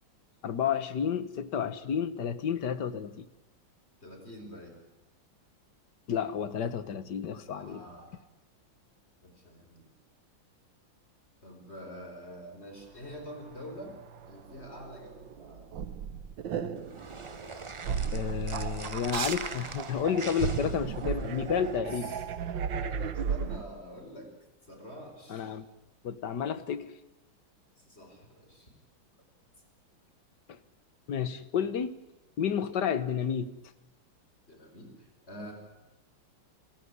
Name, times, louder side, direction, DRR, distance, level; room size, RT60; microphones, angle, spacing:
voice 1, 0.4-3.2 6.1-7.8 18.1-22.1 25.3-25.7 26.0-26.9 30.5-30.6 31.1-31.9 32.4-33.5, left 8 dB, 60° left, 14 dB, 1.8 m, -31 dB
voice 2, 4.0-4.8 7.5-8.1 9.2-9.9 11.4-14.0 14.2-15.7 21.9-22.2 23.0-24.3 24.7-25.6 27.8-28.7 34.5-35.5, equal, 30° left, 3 dB, 5.3 m, -46 dB
sound 1, 13.2-23.6, right 7 dB, 70° right, 1.8 m, -35 dB
sound 2, 16.8-21.8, right 3 dB, 30° right, 0.5 m, -43 dB
29.0 x 17.0 x 9.8 m, 0.94 s
omnidirectional pair, 2.2 m